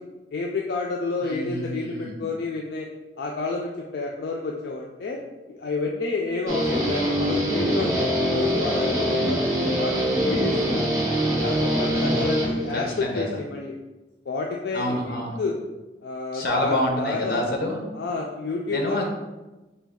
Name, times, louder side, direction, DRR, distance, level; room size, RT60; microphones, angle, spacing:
voice 1, 0.3-2.9 3.2-5.2 5.5-10.8 11.4-13.7 14.3-15.6 16.0-17.4 17.9-19.0, left 3 dB, 75° left, -1 dB, 0.4 m, -30 dB
voice 2, 1.2-2.2 11.9-12.4 12.7-13.4 14.7-15.4 16.3-17.8 18.7-19.0, left 1 dB, 55° left, 1 dB, 0.8 m, -28 dB
Guitar, 6.5-13.0, equal, 15° right, 0.6 m, -24 dB
4.4 x 2.3 x 3.6 m, 1.1 s
head